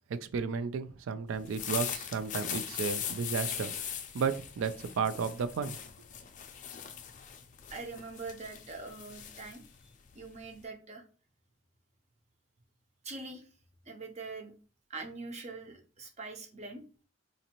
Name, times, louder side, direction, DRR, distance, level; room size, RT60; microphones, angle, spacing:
voice 1, 0.1-5.8, right 5 dB, 85° right, 0.4 m, -33 dB
sound 1, 1.3-10.6, left 9 dB, 40° left, 0.4 m, -40 dB
voice 2, 7.7-11.1 13.0-13.5 13.8-14.5 14.9-16.9, right 3 dB, 35° right, 0.6 m, -43 dB
3.9 x 2.6 x 2.9 m
head